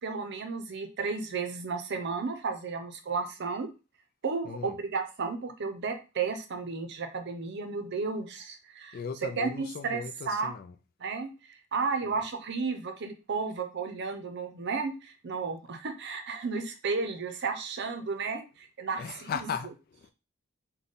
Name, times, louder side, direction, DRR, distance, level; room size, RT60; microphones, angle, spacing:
voice 1, 0.0-3.7 4.2-9.0 9.4-10.5 11.0-11.3 11.7-19.5, right 4 dB, 55° right, 0.6 m, -33 dB
voice 2, 4.4-4.8 8.9-10.7 12.0-12.1 19.0-20.1, left 6 dB, 45° left, 0.3 m, -37 dB
3.6 x 2.2 x 3.9 m
head